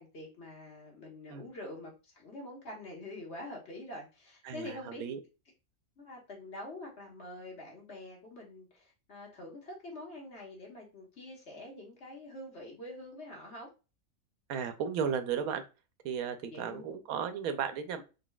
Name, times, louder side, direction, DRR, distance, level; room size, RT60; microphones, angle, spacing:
voice 1, 0.0-5.0 6.0-13.7 16.4-16.8, left 1 dB, 50° left, -1 dB, 1.4 m, -46 dB
voice 2, 14.5-15.6 16.0-18.0, right 7 dB, 85° right, 9 dB, 1.0 m, -34 dB
3.9 x 3.2 x 2.3 m, 0.31 s
omnidirectional pair, 1.5 m